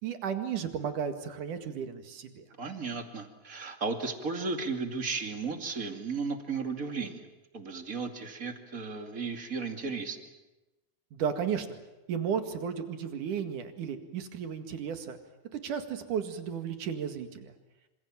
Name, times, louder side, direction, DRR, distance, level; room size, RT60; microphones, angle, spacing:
voice 1, 0.0-2.4 11.1-11.7 12.1-15.2 15.5-17.5, right 7 dB, 85° right, 7 dB, 3.6 m, -34 dB
voice 2, 2.6-7.2 7.5-10.2, right 4 dB, 30° right, 5 dB, 2.5 m, -34 dB
27.5 x 26.0 x 7.5 m, 1.0 s
omnidirectional pair, 3.5 m